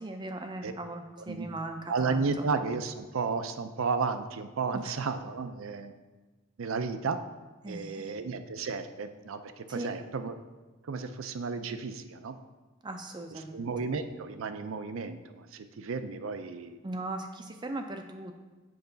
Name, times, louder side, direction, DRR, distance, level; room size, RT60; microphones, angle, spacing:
voice 1, 0.0-2.5 4.7-5.0 7.6-8.1 9.7-9.9 12.8-13.6 16.8-18.4, right 2 dB, 20° right, 5 dB, 0.4 m, -39 dB
voice 2, 1.9-5.9 6.6-7.2 7.7-10.4 10.9-12.4 13.5-16.8, right 4 dB, 75° right, 10 dB, 0.5 m, -33 dB
7.8 x 5.7 x 3.9 m, 1.2 s
head